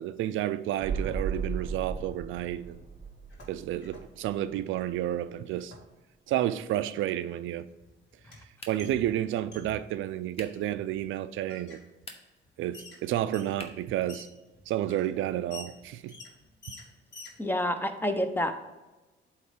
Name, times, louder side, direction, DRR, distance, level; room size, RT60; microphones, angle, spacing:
voice 1, 0.0-2.8 3.5-5.7 6.3-7.7 8.7-11.8 12.6-14.3 14.7-16.1, right 12 dB, 80° right, 0.4 m, -31 dB
sound 1, 0.8-4.6 4.8-4.9, right 5 dB, 35° right, 0.8 m, -36 dB
sound 2, 3.1-4.1 4.4-4.9 5.6-5.9 7.0-7.1 7.3-10.0 10.7-11.1 11.5-11.8 12.4-12.5 12.7-17.4, left 2 dB, 65° left, 2.1 m, -48 dB
sound 3, 8.6-9.1 10.3-10.7 11.9-12.5 13.5-13.9, left 2 dB, 30° left, 1.0 m, -46 dB
voice 2, 17.4-18.5, left 1 dB, 10° left, 0.7 m, -28 dB
7.9 x 3.2 x 5.0 m
cardioid pair, 90°, 20 cm